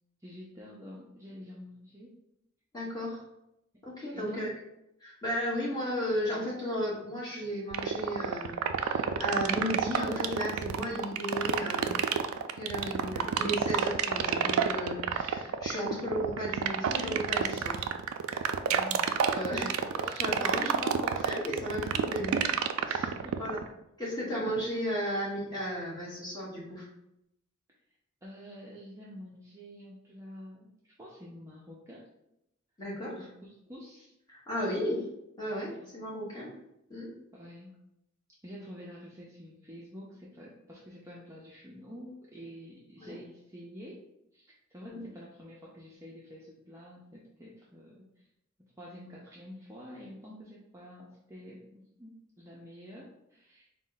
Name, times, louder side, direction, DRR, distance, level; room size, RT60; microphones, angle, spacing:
voice 1, 0.2-2.1 3.7-3.8 4.1-4.4 18.7-19.8 23.0-23.6 28.2-32.0 33.2-34.1 35.7-35.9 37.3-37.8 38.4-44.1 44.3-48.3 48.8-53.7, equal, 15° right, -5 dB, 0.5 m, -48 dB
voice 2, 2.7-3.2 3.8-4.5 5.0-12.2 12.5-17.9 18.3-18.5 19.2-22.4 22.9-23.1 23.4-23.6 24.0-26.9 32.8-33.2 34.3-35.0 35.4-36.5 36.9-37.1 43.0-43.2 44.9-45.0, equal, 20° left, -6 dB, 1.2 m, -34 dB
sound 1, 7.7-23.7, right 8 dB, 85° right, 0.3 m, -28 dB
4.1 x 2.1 x 3.8 m, 0.83 s
head